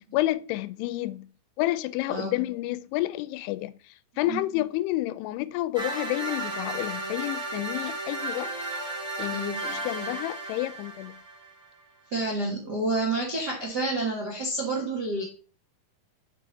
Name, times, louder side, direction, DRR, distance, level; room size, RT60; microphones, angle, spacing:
voice 1, 0.1-1.3 1.6-8.5 9.2-11.2, left 16 dB, 90° left, 2.6 m, -30 dB
sound 1, 5.7-11.7, right 2 dB, ahead, 1.1 m, -34 dB
voice 2, 9.3-9.6 12.1-15.2, right 2 dB, 85° right, 0.9 m, -29 dB
7.7 x 5.2 x 4.1 m
omnidirectional pair, 4.6 m